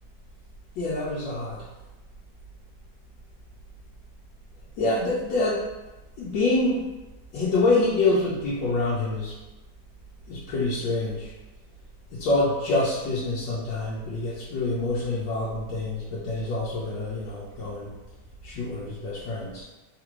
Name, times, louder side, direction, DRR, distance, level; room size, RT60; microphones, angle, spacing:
voice 1, 0.8-1.7 4.8-5.6 6.2-6.8 7.3-9.3 10.3-11.3 12.2-17.9 18.4-19.6, left 2 dB, 85° left, -7 dB, 1.4 m, -26 dB
3.5 x 2.5 x 3.0 m, 1.1 s
omnidirectional pair, 1.9 m